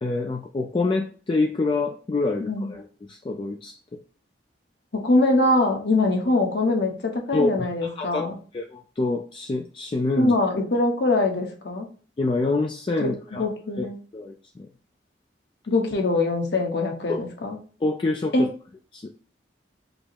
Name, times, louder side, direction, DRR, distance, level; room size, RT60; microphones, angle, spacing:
voice 1, 0.0-2.8 3.1-3.8 7.3-7.5 7.8-8.2 8.5-10.3 12.2-13.5 13.8-13.9 14.1-14.7 17.1-17.2 17.8-18.5 18.9-19.1, left 3 dB, 30° left, 3 dB, 0.3 m, -26 dB
voice 2, 2.4-2.7 4.9-8.4 10.2-11.9 13.0-14.0 15.7-17.6 18.3-18.5, left 2 dB, 65° left, 2 dB, 0.9 m, -23 dB
5.2 x 2.0 x 4.5 m, 0.40 s
head